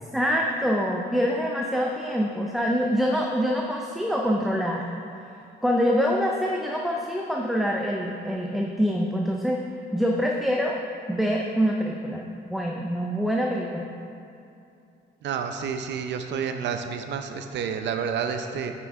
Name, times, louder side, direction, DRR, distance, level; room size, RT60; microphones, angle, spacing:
voice 1, 0.1-4.8 5.6-9.6 9.9-10.8 11.1-12.2 12.5-13.9, equal, ahead, -1 dB, 0.5 m, -25 dB
voice 2, 15.2-18.7, right 6 dB, 65° right, 7 dB, 0.6 m, -29 dB
8.9 x 6.1 x 3.6 m, 2.7 s
cardioid pair, 100°, 19 cm